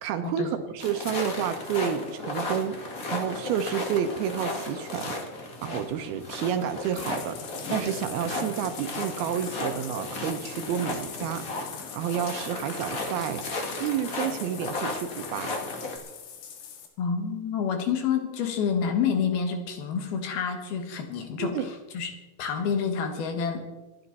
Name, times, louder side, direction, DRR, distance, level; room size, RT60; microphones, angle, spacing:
voice 1, 0.0-2.8 3.1-5.2 5.6-7.4 7.7-11.5 12.0-13.4 13.8-15.5 21.4-21.7, right 8 dB, 75° right, 9 dB, 2.6 m, -30 dB
sound 1, 0.8-16.0, left 2 dB, 40° left, 1.2 m, -35 dB
Bathtub (filling or washing), 6.8-16.9, left 8 dB, 85° left, 3.9 m, -43 dB
voice 2, 17.0-22.1 22.4-23.6, left 6 dB, 70° left, 5 dB, 3.4 m, -28 dB
26.5 x 9.6 x 4.1 m, 1.1 s
omnidirectional pair, 4.7 m